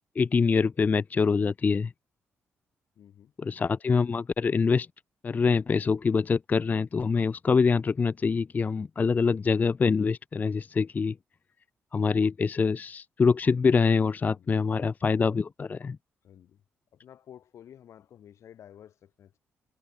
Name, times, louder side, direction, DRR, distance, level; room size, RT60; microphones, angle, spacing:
voice 1, 0.2-1.9 3.4-4.9 5.2-11.2 11.9-16.0, left 5 dB, 35° left, 0.3 m, -25 dB
voice 2, 3.0-3.3 14.3-14.5 16.2-16.6 16.9-19.4, left 10 dB, 70° left, 2.5 m, -52 dB
cardioid pair, 75°, 5 cm